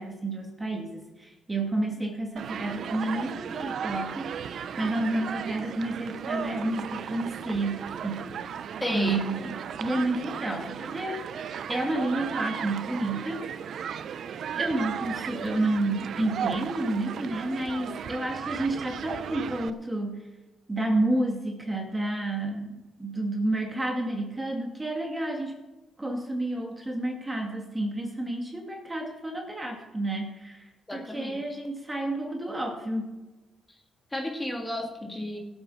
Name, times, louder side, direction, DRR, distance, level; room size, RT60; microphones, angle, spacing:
voice 1, 0.0-4.3 4.8-8.4 8.9-11.2 11.7-13.5 14.5-20.3 20.7-25.5 26.0-33.1, right 2 dB, 15° right, 1 dB, 2.5 m, -30 dB
Human group actions, 2.4-19.7, right 8 dB, 65° right, 0.7 m, -35 dB
voice 2, 8.8-9.2 30.9-31.4 34.1-35.4, left 1 dB, 15° left, 0 dB, 2.8 m, -32 dB
16.5 x 8.1 x 5.8 m, 1.1 s
cardioid pair, 90°, 0 cm